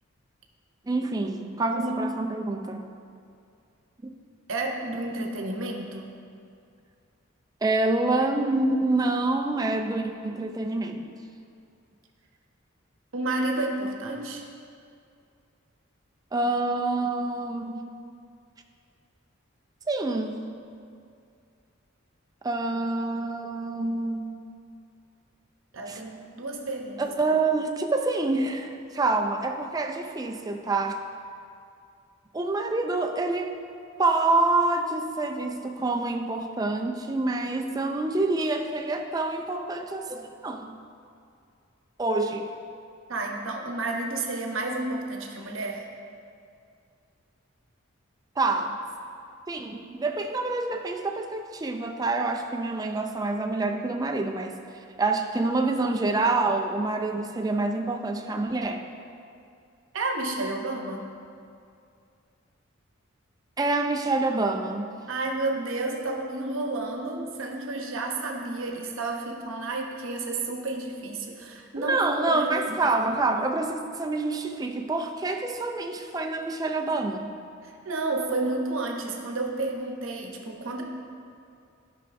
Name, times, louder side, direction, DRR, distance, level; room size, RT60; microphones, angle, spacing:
voice 1, 0.9-2.9 4.0-4.1 7.6-11.1 16.3-17.8 19.9-20.4 22.4-24.4 25.9-26.0 27.0-31.0 32.3-33.6 34.0-40.8 42.0-42.5 48.4-48.8 49.5-54.6 55.0-58.9 63.6-64.9 71.8-77.3, right 2 dB, 20° right, 4 dB, 0.4 m, -27 dB
voice 2, 1.7-2.0 4.5-6.1 13.1-14.4 25.7-27.1 43.1-45.9 59.9-61.0 65.1-72.8 77.8-80.8, right 2 dB, 70° right, 2 dB, 0.8 m, -31 dB
12.0 x 5.7 x 2.5 m, 2.4 s
head